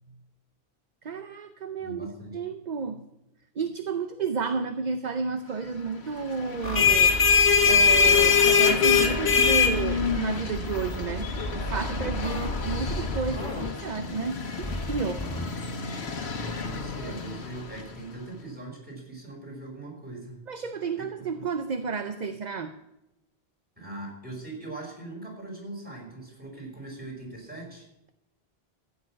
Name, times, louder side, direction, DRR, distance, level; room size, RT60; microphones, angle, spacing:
voice 1, 1.0-2.1 2.3-3.0 3.6-7.1 7.7-15.3 20.5-22.7, right 5 dB, 45° right, 8 dB, 0.8 m, -32 dB
voice 2, 1.8-2.4 16.5-20.4 21.0-21.1 23.8-27.9, right 2 dB, 10° right, -1 dB, 5.0 m, -40 dB
sound 1, 6.5-17.8, left 5 dB, 80° left, 1.6 m, -24 dB
sound 2, 6.6-8.3 8.9-10.2 10.6-13.7 14.6-15.4, equal, 25° left, 2.6 m, -34 dB
14.5 x 6.8 x 8.6 m, 0.88 s
omnidirectional pair, 1.1 m